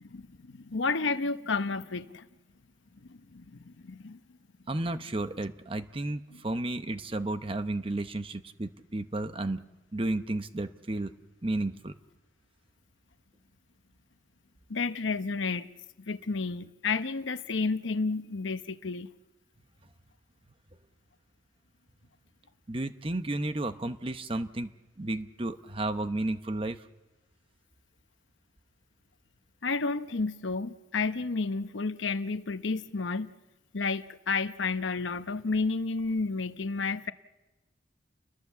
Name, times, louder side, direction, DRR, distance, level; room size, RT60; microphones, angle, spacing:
voice 1, 0.0-2.3 3.1-4.2 14.7-15.7 16.1-19.1 29.6-33.3 33.7-37.1, left 4 dB, 75° left, 0.8 m, -31 dB
voice 2, 4.7-9.6 9.9-11.1 11.4-12.0 22.7-24.7 25.0-26.9, right 2 dB, 30° right, 0.8 m, -32 dB
30.0 x 20.5 x 7.3 m
head